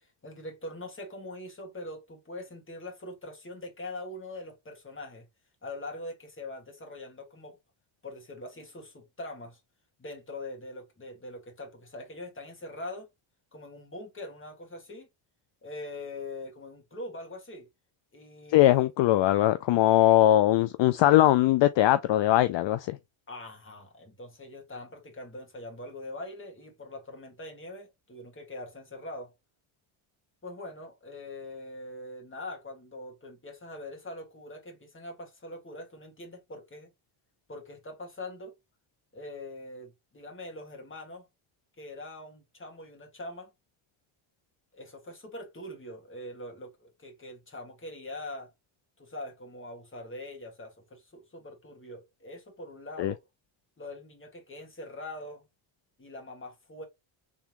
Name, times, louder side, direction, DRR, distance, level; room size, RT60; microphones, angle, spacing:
voice 1, 0.0-5.3 5.6-7.6 8.0-9.6 10.0-13.1 13.5-15.1 15.6-17.7 18.1-18.9 23.3-29.3 30.4-36.9 37.5-38.6 39.1-41.3 41.8-43.5 44.7-48.5 49.0-53.2 53.8-55.5 56.0-56.9, left 1 dB, 25° left, 2.0 m, -42 dB
voice 2, 18.5-23.0 53.0-53.1, left 14 dB, 60° left, 0.5 m, -21 dB
3.6 x 3.5 x 3.0 m
cardioid pair, 100°, 50 cm